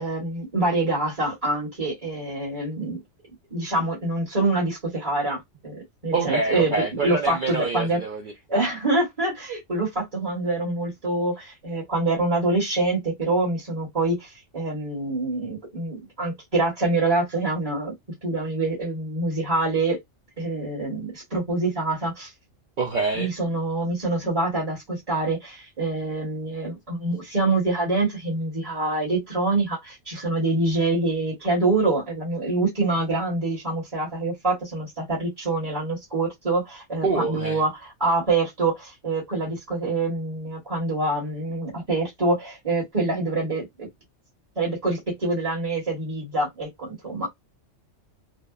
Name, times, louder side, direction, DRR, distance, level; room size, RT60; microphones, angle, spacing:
voice 1, 0.0-3.0 3.5-8.0 8.5-17.9 18.2-20.0 20.4-22.3 23.1-43.9 44.5-47.3, right 2 dB, 30° right, 1.2 m, -25 dB
voice 2, 6.1-8.3 22.8-23.3 37.0-37.6, right 3 dB, 60° right, 0.5 m, -26 dB
2.8 x 2.1 x 2.3 m
omnidirectional pair, 1.4 m